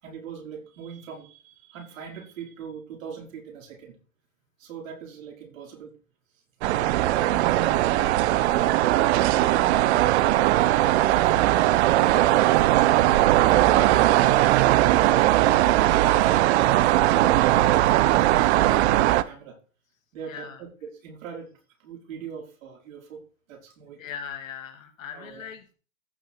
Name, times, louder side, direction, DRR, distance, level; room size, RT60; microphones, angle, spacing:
voice 1, 0.0-3.9 4.6-5.9 6.6-8.3 8.6-11.5 11.8-14.3 14.7-16.5 16.9-19.6 20.1-23.2 23.5-24.0 25.1-25.4, right 6 dB, 70° right, 1 dB, 4.4 m, -40 dB
sound 1, 6.6-19.2, right 15 dB, 55° right, 0.7 m, -19 dB
voice 2, 20.3-20.6 24.0-25.7, left 7 dB, 70° left, 7 dB, 2.2 m, -39 dB
14.5 x 5.2 x 4.5 m, 0.37 s
hypercardioid pair, 120°, 41 cm